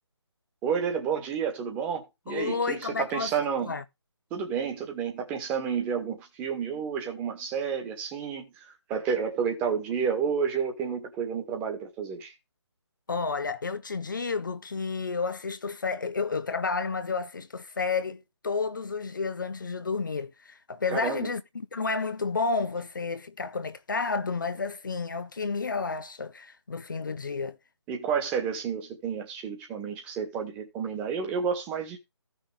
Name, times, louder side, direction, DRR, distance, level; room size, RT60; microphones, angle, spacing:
voice 1, 0.6-3.7 4.3-12.3 20.9-21.3 27.9-32.0, right 6 dB, 10° right, 1.7 m, -30 dB
voice 2, 2.3-3.3 3.7-3.8 13.1-21.4 21.7-27.6, left 4 dB, 45° left, 0.8 m, -31 dB
15.0 x 6.3 x 3.4 m
figure-of-eight pair, 150°, 15 cm